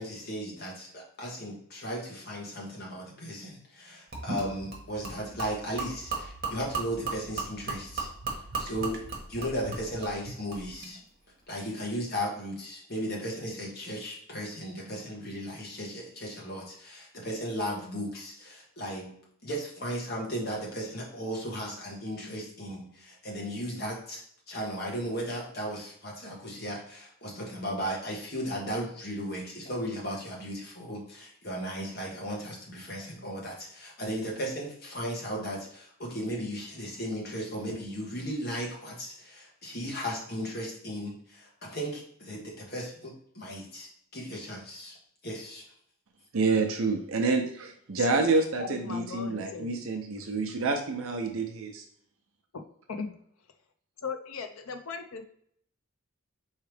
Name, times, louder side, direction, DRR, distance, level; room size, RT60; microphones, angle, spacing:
voice 1, 0.0-8.1 8.6-9.0 9.3-11.0 11.5-45.0 45.2-45.6, equal, 45° left, -2 dB, 1.3 m, -36 dB
Gurgling / Liquid, 4.1-10.9, right 4 dB, 45° right, 1.2 m, -37 dB
voice 2, 46.3-51.7, right 3 dB, 75° right, 3 dB, 0.6 m, -28 dB
voice 3, 48.6-49.9 52.5-52.6 53.0-53.1 54.0-55.2, left 4 dB, 80° left, 6 dB, 0.5 m, -37 dB
4.7 x 3.2 x 3.3 m, 0.66 s
head